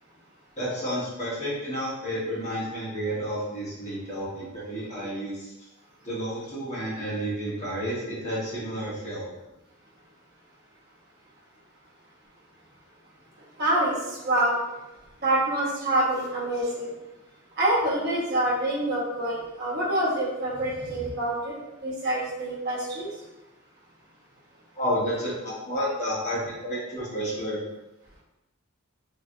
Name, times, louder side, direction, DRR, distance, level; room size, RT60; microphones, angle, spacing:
voice 1, 0.6-5.5 6.0-9.3 24.7-27.6, equal, 35° left, -7 dB, 1.3 m, -31 dB
voice 2, 13.6-13.9 14.2-14.6 15.2-16.9 17.6-21.5 21.8-23.1, right 1 dB, 50° right, -6 dB, 1.1 m, -26 dB
3.2 x 3.1 x 2.6 m, 0.97 s
head